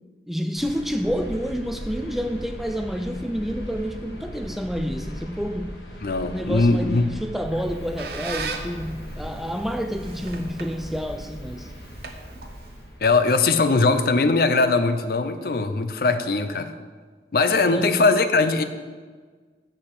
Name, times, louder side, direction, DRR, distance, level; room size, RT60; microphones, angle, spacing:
voice 1, 0.3-5.8 6.3-11.7 17.6-18.0, equal, ahead, 6 dB, 0.3 m, -29 dB
sound 1, 0.5-13.1, equal, 80° left, 1.5 m, -38 dB
voice 2, 6.0-7.1 13.0-16.7 17.3-18.6, left 3 dB, 55° left, 10 dB, 0.6 m, -20 dB
Squeak, 7.5-12.9, right 4 dB, 60° right, 0.9 m, -38 dB
7.9 x 6.4 x 6.1 m, 1.5 s
head